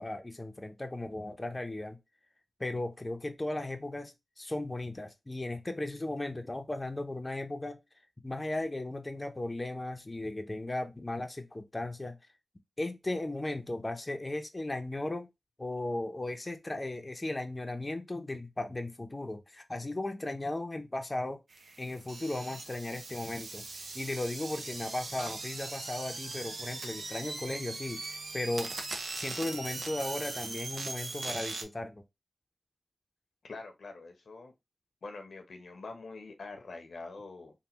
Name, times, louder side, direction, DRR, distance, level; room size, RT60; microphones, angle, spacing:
voice 1, 0.0-2.0 2.6-7.8 8.2-12.2 12.8-15.3 15.6-21.4 21.8-28.7 29.1-32.0, left 2 dB, 30° left, 0.6 m, -36 dB
sound 1, 21.5-31.6, right 3 dB, 75° right, 0.7 m, -40 dB
voice 2, 33.4-34.5 35.0-37.5, left 3 dB, 80° left, 0.8 m, -45 dB
3.3 x 2.2 x 2.9 m
cardioid pair, 40°, 0 cm